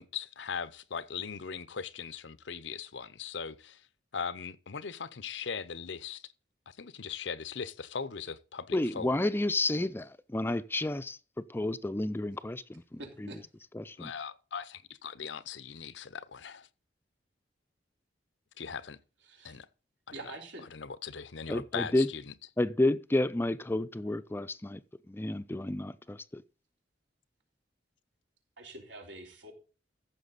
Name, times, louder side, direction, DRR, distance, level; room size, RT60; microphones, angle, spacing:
voice 1, 0.0-3.9 4.1-6.3 6.7-9.1 14.0-16.7 18.6-19.0 19.4-19.7 20.7-22.3, left 6 dB, 85° left, 0.7 m, -39 dB
voice 2, 8.7-11.2 11.5-13.3 13.7-14.1 21.5-22.1 22.6-24.8 25.1-26.4, left 2 dB, 15° left, 0.4 m, -31 dB
voice 3, 13.0-13.5 19.3-19.6 20.1-20.7 28.6-29.5, right 2 dB, 90° right, 3.7 m, -45 dB
14.5 x 6.9 x 4.0 m
head